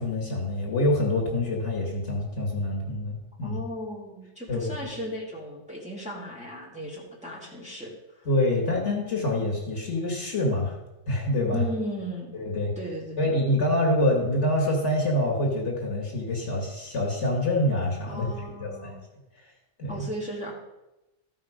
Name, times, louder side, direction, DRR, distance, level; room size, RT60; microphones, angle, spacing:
voice 1, 0.0-3.6 4.5-4.7 8.3-10.8 11.1-11.6 12.3-12.7 13.2-18.3 18.6-18.9 19.8-20.1, left 1 dB, 60° left, 0 dB, 2.3 m, -26 dB
voice 2, 3.4-8.3 11.5-12.4 12.8-13.3 18.0-19.0 19.9-20.5, equal, 5° right, -4 dB, 2.3 m, -36 dB
14.5 x 4.8 x 5.1 m, 0.97 s
omnidirectional pair, 1.4 m